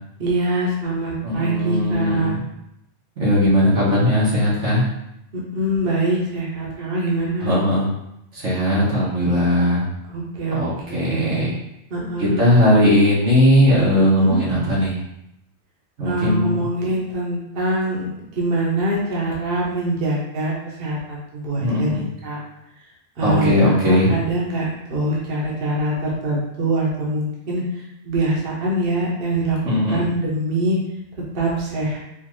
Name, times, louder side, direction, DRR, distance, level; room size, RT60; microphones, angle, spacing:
voice 1, 0.2-2.3 5.3-7.5 10.1-10.6 11.0-11.5 11.9-12.5 14.0-14.4 16.0-18.1 18.3-22.4 23.2-29.6 29.9-30.8 31.3-32.0, right 1 dB, 50° right, -4 dB, 1.0 m, -24 dB
voice 2, 1.2-2.4 3.2-4.8 7.4-7.9 8.3-9.9 10.5-11.6 12.2-15.0 16.0-16.6 21.6-22.0 23.2-24.1 29.6-30.0, left 1 dB, 90° right, -7 dB, 1.7 m, -18 dB
4.4 x 2.5 x 3.0 m, 0.84 s
omnidirectional pair, 1.2 m